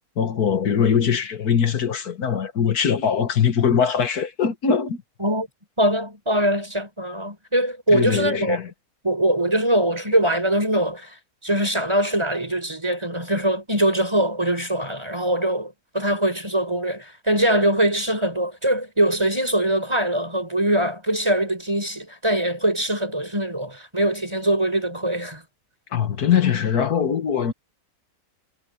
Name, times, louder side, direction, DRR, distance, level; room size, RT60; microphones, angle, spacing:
voice 1, 0.2-5.0 7.9-8.7 25.9-27.5, left 7 dB, 85° left, 2.0 m, -21 dB
voice 2, 5.8-8.6 9.0-25.4, right 1 dB, 15° right, 5.3 m, -22 dB
omnidirectional pair, 1.6 m